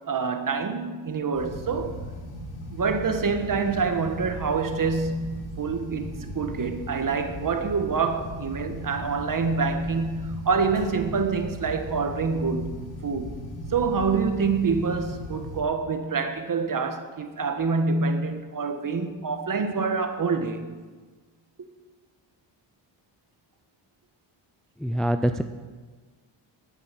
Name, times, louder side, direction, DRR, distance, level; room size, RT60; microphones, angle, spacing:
voice 1, 0.1-2.0 2.7-13.3 13.7-20.7, right 4 dB, 45° right, 1.6 m, -26 dB
sound 1, 1.3-15.6, equal, 70° left, 3.6 m, -38 dB
voice 2, 24.8-25.4, equal, ahead, 0.5 m, -24 dB
12.0 x 8.9 x 8.5 m
cardioid pair, 95°, 47 cm